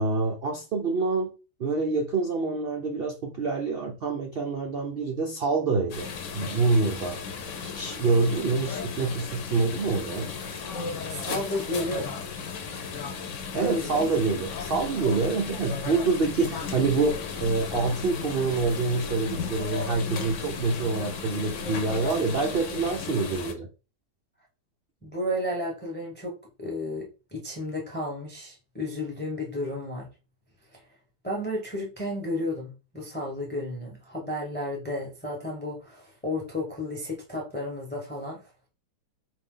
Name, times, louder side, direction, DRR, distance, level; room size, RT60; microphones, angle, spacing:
voice 1, 0.0-1.3 1.6-6.1 6.3-7.2 7.6-10.3 13.5-23.7, right 4 dB, 85° right, 0.5 m, -26 dB
sound 1, 5.9-23.5, left 5 dB, 55° left, 0.9 m, -35 dB
voice 2, 11.1-12.1 13.5-14.1 15.3-15.5 25.0-30.1 30.7-30.8 31.2-38.4, left 1 dB, 10° left, 0.8 m, -32 dB
4.5 x 2.7 x 3.7 m
omnidirectional pair, 1.8 m